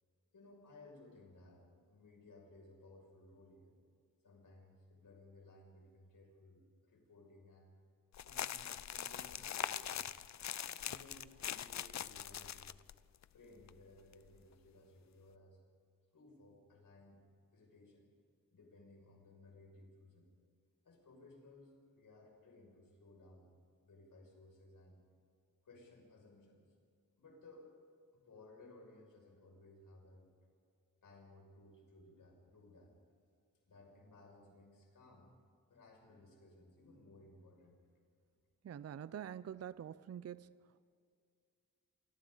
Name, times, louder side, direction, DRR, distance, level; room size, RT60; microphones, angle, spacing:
voice 1, 0.3-3.7 4.2-7.7 8.2-10.0 10.7-12.6 13.3-15.6 16.1-18.0 18.5-20.3 20.8-23.5 23.8-25.0 25.6-26.6 27.2-27.7 28.1-30.3 31.0-32.9 33.7-35.3 35.7-37.8, left 2 dB, 70° left, 0 dB, 6.3 m, -60 dB
sound 1, 8.1-12.9 13.2-13.3 13.7-13.8 14.1-14.4, left 10 dB, 55° left, 0.5 m, -42 dB
voice 2, 38.6-40.9, right 9 dB, 50° right, 16 dB, 0.5 m, -46 dB
27.5 x 24.5 x 4.0 m, 2.2 s
wide cardioid pair, 120°, 33 cm